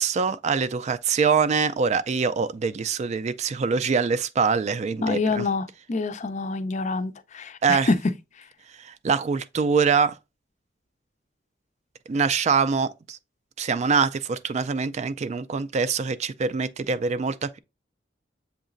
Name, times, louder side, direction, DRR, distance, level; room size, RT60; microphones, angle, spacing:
voice 1, 0.0-5.4 7.6-7.9 8.8-10.2 12.1-13.2 13.6-17.6, right 5 dB, 40° right, 0.3 m, -24 dB
voice 2, 5.0-8.0 8.3-8.5, left 3 dB, 40° left, 0.5 m, -27 dB
7.2 x 2.9 x 2.5 m
head